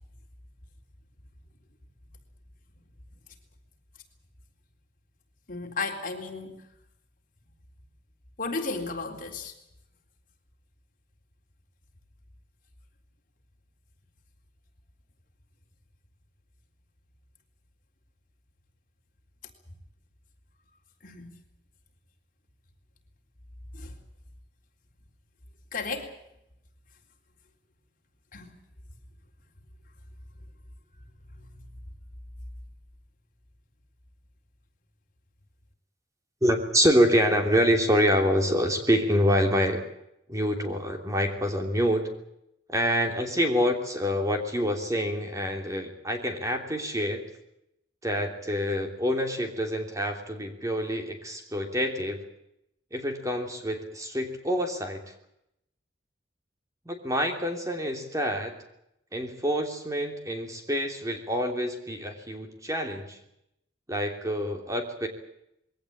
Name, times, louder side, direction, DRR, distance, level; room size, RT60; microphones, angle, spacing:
voice 1, 5.5-6.6 8.4-9.5 21.0-21.3 23.7-23.9 25.7-26.1 28.3-28.5, left 3 dB, 50° left, 3 dB, 3.8 m, -34 dB
voice 2, 36.4-39.8 40.3-42.1 42.7-47.2 48.0-52.2 52.9-55.0 56.8-58.5 59.1-63.2 63.9-65.1, equal, 20° right, 4 dB, 3.1 m, -26 dB
22.0 x 18.0 x 8.8 m, 0.80 s
head